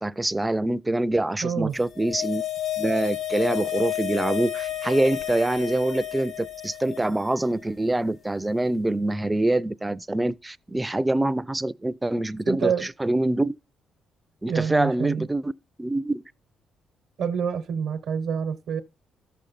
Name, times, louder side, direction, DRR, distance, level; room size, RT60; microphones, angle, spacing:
voice 1, 0.0-2.4 2.8-13.5 14.4-15.5 15.8-16.2, right 1 dB, 15° right, 0.4 m, -25 dB
voice 2, 1.4-1.8 12.5-12.9 14.5-15.3 17.2-18.8, right 7 dB, 80° right, 0.9 m, -27 dB
sound 1, 1.8-7.3 7.5-7.6, left 12 dB, 55° left, 0.8 m, -31 dB
sound 2, 3.8-5.8, left 5 dB, 75° left, 2.6 m, -54 dB
13.5 x 6.4 x 4.0 m
cardioid pair, 90°, 0 cm